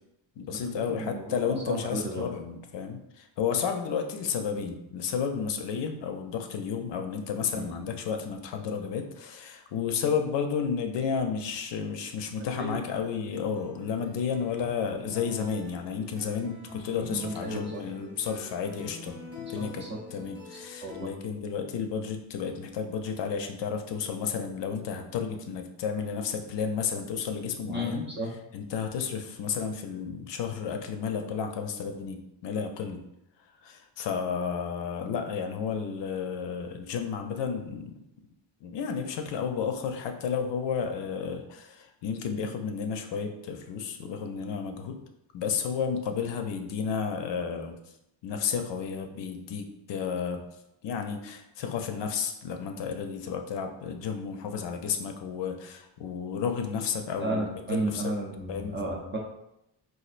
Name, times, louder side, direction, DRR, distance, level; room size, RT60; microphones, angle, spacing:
voice 1, 0.4-28.0 28.5-33.0 33.6-38.0 38.6-45.0 45.3-47.7 48.2-50.4 50.8-58.0 58.5-58.9, left 6 dB, 70° left, 5 dB, 0.5 m, -32 dB
voice 2, 0.9-2.3 7.5-7.9 12.4-12.8 17.0-17.8 19.5-20.0 20.8-21.1 27.7-28.3 57.2-59.2, right 1 dB, 25° right, -1 dB, 0.4 m, -33 dB
sound 1, 13.0-21.1, left 2 dB, 10° right, 0.8 m, -46 dB
4.3 x 2.4 x 2.4 m, 0.83 s
wide cardioid pair, 155°, 45 cm